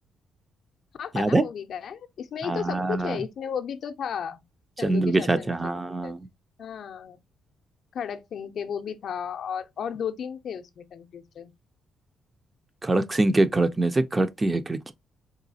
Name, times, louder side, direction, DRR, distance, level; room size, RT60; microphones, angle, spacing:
voice 1, 1.0-4.4 4.8-6.1 6.6-7.2 7.9-11.5, left 8 dB, 60° left, 0.4 m, -34 dB
voice 2, 2.4-3.2 4.8-6.2 12.8-14.9, right 2 dB, 20° right, 0.4 m, -24 dB
3.8 x 2.3 x 2.6 m
cardioid pair, 90°, 0 cm